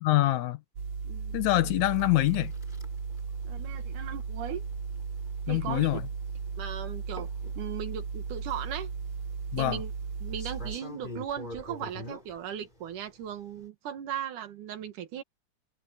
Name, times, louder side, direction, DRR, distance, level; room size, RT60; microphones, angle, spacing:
voice 1, 0.0-0.6 1.3-2.5 5.5-6.0 9.5-9.8, left 17 dB, 75° left, 1.9 m, -25 dB
sound 1, 0.8-10.8, right 5 dB, 50° right, 3.5 m, -36 dB
voice 2, 1.0-1.4 3.4-4.6 5.5-6.0 6.6-7.3 7.6-8.9 9.6-9.9 10.2-15.2, right 9 dB, 80° right, 3.1 m, -37 dB
sound 2, 1.8-13.7, left 1 dB, 15° left, 4.8 m, -48 dB
omnidirectional pair, 3.6 m